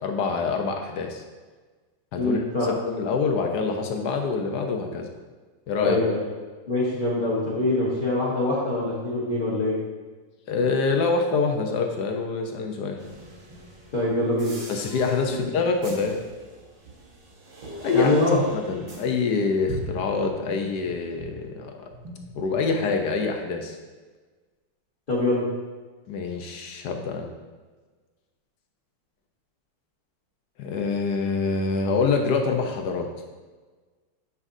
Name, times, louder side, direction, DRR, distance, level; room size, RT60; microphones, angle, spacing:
voice 1, 0.0-1.2 2.1-5.1 5.7-6.0 10.5-13.0 14.7-16.2 17.8-18.1 18.7-21.8 22.3-23.8 26.1-27.3 30.6-33.1, left 4 dB, 65° left, 3 dB, 1.3 m, -25 dB
voice 2, 2.2-2.7 5.8-6.2 6.7-9.7 13.9-14.5 17.9-18.4 25.1-25.4, left 2 dB, 30° left, -9 dB, 1.2 m, -24 dB
sound 1, 13.0-21.6 21.9-23.0, right 2 dB, 90° right, 2.3 m, -41 dB
9.7 x 5.7 x 2.7 m, 1.4 s
omnidirectional pair, 2.0 m